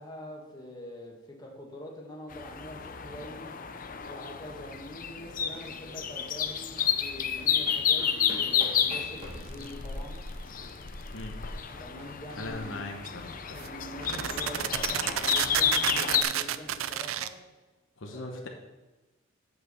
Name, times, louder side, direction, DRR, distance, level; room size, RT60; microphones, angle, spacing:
voice 1, 0.0-3.5 4.1-10.2 11.8-12.8 13.4-17.3 18.0-18.5, equal, 20° left, -1 dB, 1.7 m, -44 dB
sound 1, 2.3-16.2, left 8 dB, 40° left, 0.6 m, -31 dB
sound 2, 4.9-16.7, equal, 30° right, 2.2 m, -50 dB
sound 3, 9.5-9.9 13.0-13.1 13.6-13.7 14.0-17.3, right 10 dB, 85° right, 0.5 m, -30 dB
voice 2, 12.4-13.6 14.1-14.2 18.0-18.5, left 2 dB, 70° left, 2 dB, 1.0 m, -39 dB
8.2 x 6.1 x 7.0 m, 1.1 s
head